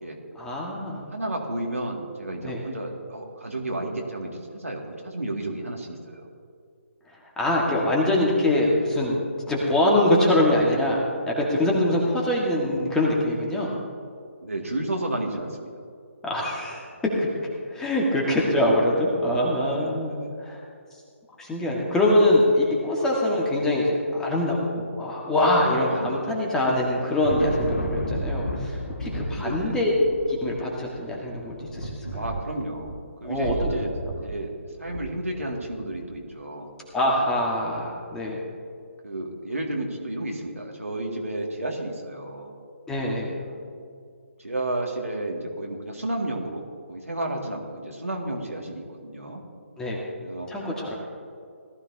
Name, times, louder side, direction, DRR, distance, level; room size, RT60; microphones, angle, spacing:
voice 1, 0.3-1.0 2.4-2.6 7.4-9.2 9.5-13.7 16.2-16.8 17.2-17.3 17.7-20.6 21.4-29.9 30.3-32.2 33.2-33.7 34.0-34.1 36.9-38.4 42.9-43.3 49.8-50.0 50.5-50.9, left 1 dB, 5° left, -3 dB, 1.6 m, -24 dB
voice 2, 1.1-6.2 12.0-12.4 14.4-15.7 19.6-20.3 25.9-26.4 29.3-29.8 32.1-32.9 33.2-33.9 34.2-34.5 34.8-36.7 37.1-37.2 39.0-42.5 43.3-43.6 44.4-49.4 50.2-50.5, right 1 dB, 85° right, 0 dB, 2.1 m, -32 dB
Thunder, 26.6-36.0, right 1 dB, 80° left, 2.6 m, -33 dB
18.0 x 13.5 x 2.7 m, 2.3 s
figure-of-eight pair, 145°, 7 cm